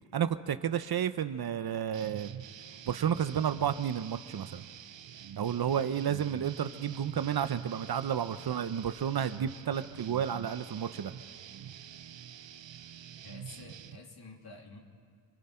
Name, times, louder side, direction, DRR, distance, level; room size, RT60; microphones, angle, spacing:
voice 1, 0.1-2.3 2.9-4.6 5.4-11.1, right 9 dB, 55° right, 12 dB, 0.8 m, -31 dB
sound 1, 1.9-14.0, right 9 dB, 75° right, 0.9 m, -47 dB
voice 2, 13.2-14.8, left 3 dB, 55° left, 0 dB, 3.0 m, -49 dB
29.0 x 21.0 x 4.5 m, 2.1 s
cardioid pair, 85°, 45 cm